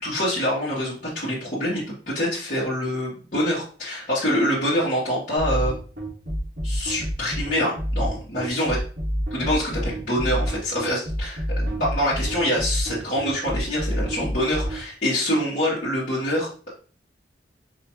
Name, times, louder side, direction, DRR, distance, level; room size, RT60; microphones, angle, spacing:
voice 1, 0.0-5.7 6.6-8.8 9.3-16.7, equal, 45° left, -11 dB, 1.6 m, -25 dB
sound 1, 5.4-14.8, equal, 70° right, 1.6 m, -27 dB
4.9 x 2.9 x 3.0 m, 0.40 s
head